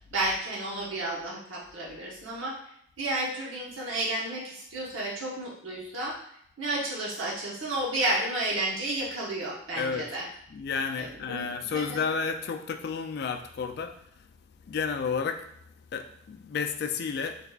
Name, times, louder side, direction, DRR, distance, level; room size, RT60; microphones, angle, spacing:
voice 1, 0.1-2.6 3.0-6.2 6.6-10.3 11.0-12.0, right 1 dB, 80° right, -4 dB, 0.9 m, -32 dB
voice 2, 9.8-10.1 10.5-14.0 14.7-15.4 15.9-17.4, left 5 dB, 55° left, 7 dB, 0.3 m, -31 dB
4.0 x 3.5 x 2.3 m, 0.70 s
head